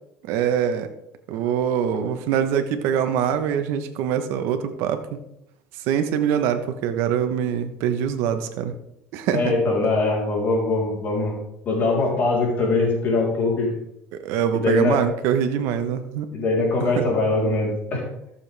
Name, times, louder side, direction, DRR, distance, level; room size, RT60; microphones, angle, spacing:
voice 1, 0.3-0.9 1.3-5.2 5.8-8.7 9.1-9.5 14.1-16.3 16.8-17.0, right 8 dB, 80° right, 8 dB, 1.0 m, -24 dB
voice 2, 9.3-11.4 11.7-13.7 14.5-15.0 16.3-18.0, left 3 dB, 45° left, -2 dB, 3.6 m, -22 dB
13.5 x 7.0 x 3.4 m, 0.79 s
cardioid pair, 125°, 4 cm